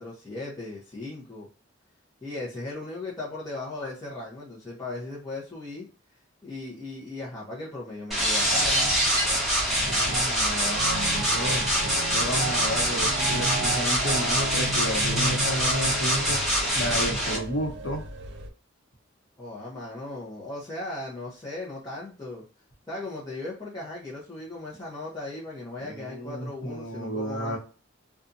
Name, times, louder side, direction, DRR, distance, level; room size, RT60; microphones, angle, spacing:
voice 1, 0.0-1.5 2.2-5.9 6.4-8.8 19.4-22.4 22.9-27.6, left 2 dB, 20° left, -7 dB, 0.7 m, -37 dB
sound 1, 8.1-17.4, equal, ahead, 1.1 m, -25 dB
sound 2, 8.4-18.5, right 2 dB, 65° right, 0.5 m, -34 dB
voice 2, 9.8-11.6 12.1-16.4 16.7-18.0 25.8-27.6, equal, 75° left, 1 dB, 0.9 m, -32 dB
2.6 x 2.3 x 2.6 m, 0.36 s
head